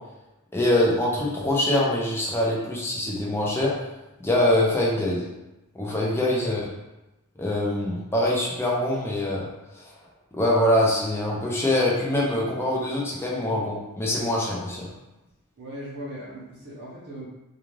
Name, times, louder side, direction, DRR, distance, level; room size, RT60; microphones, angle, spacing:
voice 1, 0.5-3.7 4.2-5.2 5.7-6.6 7.4-9.5 9.7-9.8 10.3-14.9, left 1 dB, 10° left, -4 dB, 0.5 m, -24 dB
voice 2, 15.6-17.3, equal, 50° right, -7 dB, 0.7 m, -38 dB
2.4 x 2.3 x 3.1 m, 0.98 s
head